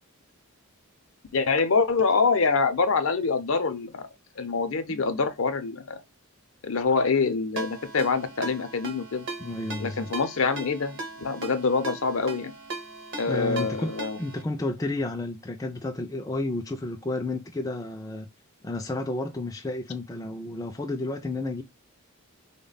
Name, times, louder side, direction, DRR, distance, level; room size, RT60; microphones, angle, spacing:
voice 1, 1.3-4.1 4.4-6.0 6.6-9.2 9.8-12.5 13.2-14.2, left 4 dB, 65° left, 0.6 m, -25 dB
Ringtone, 7.6-14.4, right 2 dB, 55° right, 0.9 m, -38 dB
voice 2, 9.4-10.1 13.3-13.9 14.2-18.3 18.6-21.6, left 2 dB, 15° left, 0.3 m, -31 dB
3.5 x 2.1 x 3.8 m
head